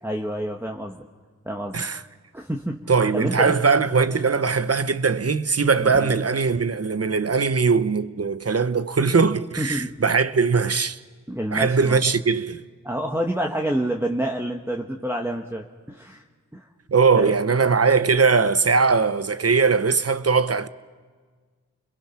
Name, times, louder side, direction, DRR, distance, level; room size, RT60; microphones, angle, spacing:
voice 1, 0.0-1.0 1.5-1.8 2.3-3.5 5.8-6.1 9.6-9.9 11.3-12.0 12.8-16.2 16.5-16.7 17.1-17.3, right 1 dB, 5° right, 1.6 m, -28 dB
voice 2, 2.9-11.0 11.5-12.6 16.9-20.7, right 5 dB, 50° right, 1.0 m, -20 dB
30.0 x 22.0 x 5.9 m
cardioid pair, 40°, 32 cm